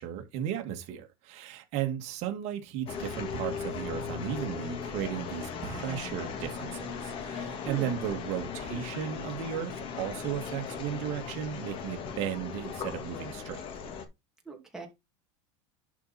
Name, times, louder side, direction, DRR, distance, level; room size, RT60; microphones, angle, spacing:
voice 1, 0.0-13.6, right 10 dB, 45° right, 2.2 m, -35 dB
sound 1, 2.9-14.1, left 6 dB, 35° left, 1.7 m, -38 dB
voice 2, 14.5-14.9, right 4 dB, 5° right, 2.4 m, -41 dB
11.0 x 4.3 x 4.3 m
supercardioid pair, 155°, 15 cm